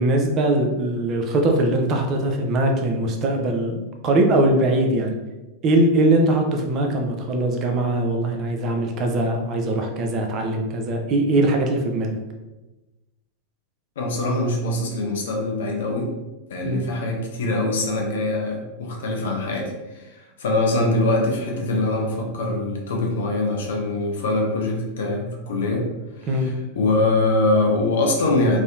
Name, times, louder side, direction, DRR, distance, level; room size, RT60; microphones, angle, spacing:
voice 1, 0.0-3.8 4.0-5.2 5.6-12.2 16.6-16.9 26.3-26.5, right 1 dB, 35° right, 3 dB, 0.4 m, -21 dB
voice 2, 14.0-16.1 16.5-25.9 26.2-28.6, left 2 dB, 60° left, 1 dB, 0.5 m, -23 dB
2.7 x 2.0 x 2.5 m, 1.1 s
figure-of-eight pair, 90°, 0 cm